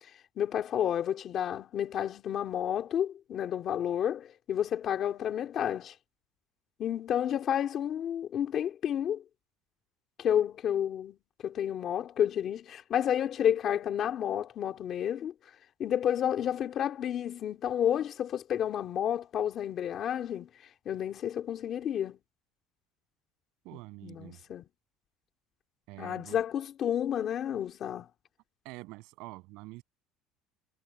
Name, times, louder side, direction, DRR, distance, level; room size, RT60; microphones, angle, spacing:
voice 1, 0.4-5.9 6.8-9.2 10.2-11.2 11.4-15.3 15.8-20.5 20.8-22.2 23.7-24.6 26.0-28.1, left 9 dB, 30° left, 2.8 m, -30 dB
voice 2, 23.6-24.4 25.9-26.4 28.6-29.8, right 23 dB, 60° right, 7.7 m, -46 dB
cardioid pair, 180°, 0 cm